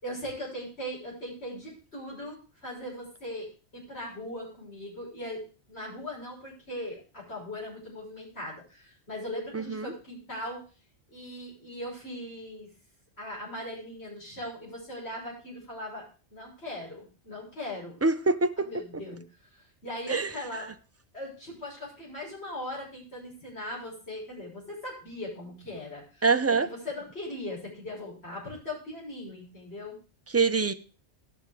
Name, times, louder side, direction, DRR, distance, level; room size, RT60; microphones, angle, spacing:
voice 1, 0.0-3.5 3.7-5.4 5.7-10.6 11.1-12.7 13.2-16.0 16.3-18.0 18.7-19.2 19.5-20.7 21.1-26.3 26.6-30.0, left 1 dB, 65° left, -4 dB, 6.6 m, -39 dB
voice 2, 9.5-9.9 18.0-18.7 20.1-20.3 26.2-26.7 30.3-30.7, right 4 dB, 15° right, 9 dB, 0.5 m, -24 dB
17.5 x 6.6 x 5.0 m, 0.36 s
omnidirectional pair, 1.2 m